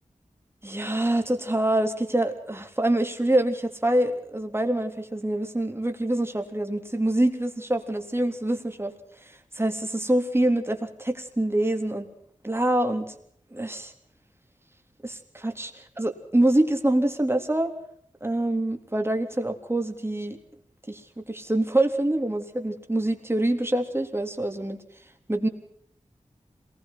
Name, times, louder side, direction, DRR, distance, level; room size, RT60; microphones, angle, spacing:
voice 1, 0.6-8.9 9.6-12.1 12.4-13.2 13.5-13.9 15.0-17.7 18.2-20.4 20.9-24.8 25.3-25.5, right 1 dB, 20° right, 4 dB, 3.6 m, -25 dB
27.0 x 20.5 x 6.0 m, 0.65 s
wide cardioid pair, 65°, 12 cm